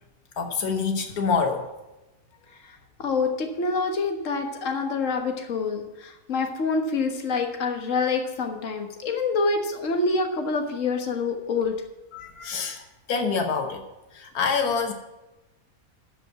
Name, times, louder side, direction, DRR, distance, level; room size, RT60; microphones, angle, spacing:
voice 1, 0.4-1.7 12.1-12.8 13.1-13.9 14.1-14.9, left 5 dB, 85° left, 5 dB, 1.6 m, -26 dB
voice 2, 2.7-11.8, left 4 dB, 60° left, 4 dB, 1.6 m, -26 dB
13.0 x 5.3 x 7.4 m, 0.99 s
omnidirectional pair, 1.5 m